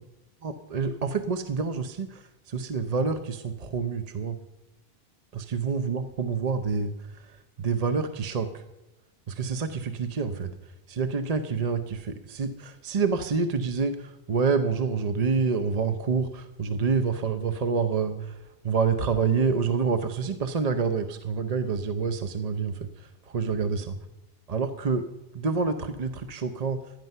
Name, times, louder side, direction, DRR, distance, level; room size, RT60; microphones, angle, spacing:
voice 1, 0.4-4.4 5.3-8.6 9.3-24.0 24.5-25.1 25.3-26.8, right 5 dB, 40° right, 8 dB, 0.8 m, -28 dB
15.5 x 10.5 x 5.6 m, 0.96 s
omnidirectional pair, 1.1 m